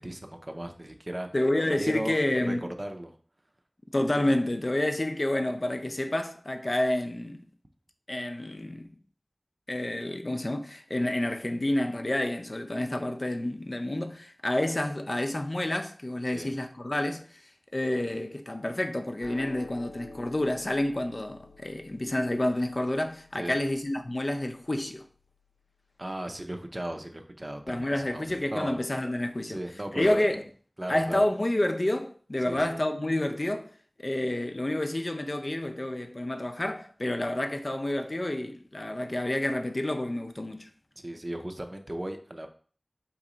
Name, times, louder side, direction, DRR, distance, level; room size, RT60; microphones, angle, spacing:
voice 1, 0.0-1.3 1.8-2.2 2.4-3.2 16.3-16.5 23.4-23.6 26.0-28.8 29.5-30.3 30.8-31.3 32.4-32.8 41.0-42.5, right 1 dB, 40° right, 0.6 m, -36 dB
voice 2, 1.3-2.7 3.9-7.4 8.1-8.9 9.7-17.4 17.7-25.0 27.7-29.6 29.9-30.4 30.9-33.7 34.0-40.7, left 1 dB, 55° left, 0.5 m, -29 dB
sound 1, 19.2-25.7, left 2 dB, 75° left, 0.8 m, -50 dB
4.5 x 3.1 x 3.8 m
wide cardioid pair, 45°, 0 cm